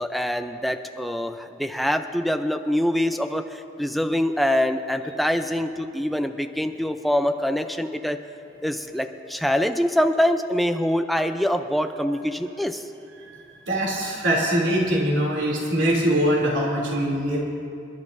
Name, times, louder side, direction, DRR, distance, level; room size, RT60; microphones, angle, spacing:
voice 1, 0.0-8.2 8.6-12.9, equal, ahead, 6 dB, 0.5 m, -24 dB
voice 2, 13.7-17.4, equal, 80° right, -3 dB, 3.0 m, -22 dB
29.0 x 12.0 x 2.7 m, 2.6 s
head